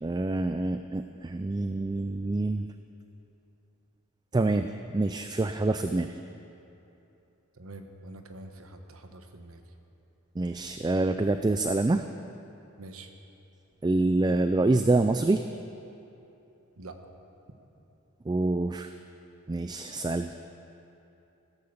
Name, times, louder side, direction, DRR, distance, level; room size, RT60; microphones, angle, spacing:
voice 1, 0.0-2.7 4.3-6.1 10.4-12.1 13.8-15.4 18.3-18.9 19.5-20.3, right 2 dB, 20° right, 8 dB, 0.3 m, -26 dB
voice 2, 7.6-9.6 12.8-13.1 16.8-17.0, right 2 dB, 70° right, 6 dB, 1.2 m, -45 dB
15.5 x 12.5 x 6.8 m, 2.9 s
head